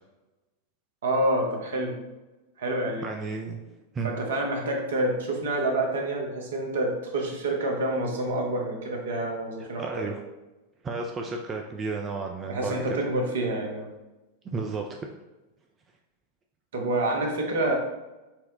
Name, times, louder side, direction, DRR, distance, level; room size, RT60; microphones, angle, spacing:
voice 1, 1.0-2.0 2.6-3.1 4.0-10.0 12.5-13.9 16.7-17.7, right 1 dB, 60° right, 1 dB, 0.8 m, -27 dB
voice 2, 3.0-3.6 3.9-4.1 9.6-10.2 10.8-13.0 14.4-15.1, right 4 dB, 20° right, 2 dB, 0.3 m, -33 dB
4.4 x 2.1 x 3.7 m, 1.1 s
figure-of-eight pair, 90°, 0 cm